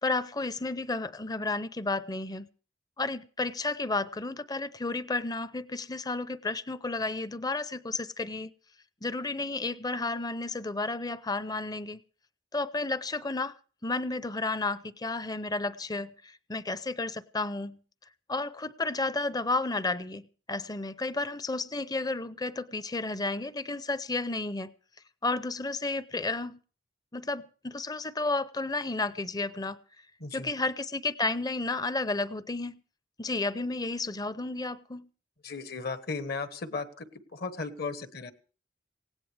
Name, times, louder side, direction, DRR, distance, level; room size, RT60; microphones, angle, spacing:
voice 1, 0.0-2.5 3.0-8.5 9.0-12.0 12.5-13.6 13.8-17.8 18.3-24.7 25.2-26.6 27.1-29.8 30.3-32.8 33.2-35.1, left 3 dB, 20° left, 0.6 m, -32 dB
voice 2, 30.2-30.5 35.4-38.3, left 4 dB, 55° left, 1.2 m, -36 dB
19.0 x 17.0 x 3.4 m
head